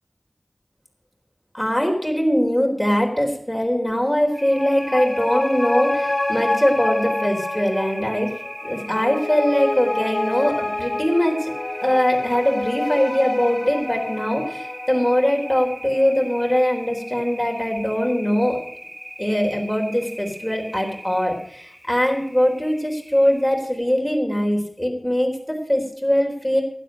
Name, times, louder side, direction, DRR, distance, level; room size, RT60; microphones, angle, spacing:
voice 1, 1.5-8.3 8.6-11.5 11.8-18.6 19.2-26.6, equal, 5° left, 1 dB, 3.9 m, -21 dB
sound 1, 4.3-17.1 17.5-17.6, left 2 dB, 60° left, 2.5 m, -28 dB
sound 2, 4.3-23.5, equal, 20° right, 4.1 m, -39 dB
12.5 x 11.0 x 6.3 m, 0.66 s
wide cardioid pair, 45°, 0 cm